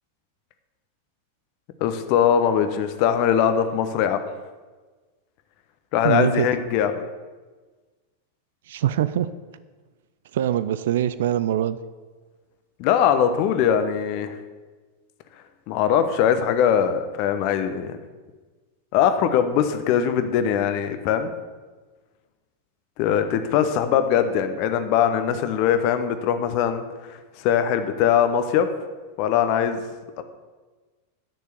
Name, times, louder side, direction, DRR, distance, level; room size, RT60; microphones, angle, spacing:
voice 1, 1.8-4.2 5.9-6.9 12.8-14.4 15.7-18.0 18.9-21.3 23.0-28.7 29.2-29.8 30.2-30.3, left 8 dB, 45° left, 9 dB, 1.1 m, -21 dB
voice 2, 6.0-6.5 8.7-9.3 10.3-11.8, right 11 dB, 55° right, 15 dB, 0.5 m, -23 dB
10.0 x 6.8 x 8.3 m, 1.3 s
figure-of-eight pair, 90°, 0 cm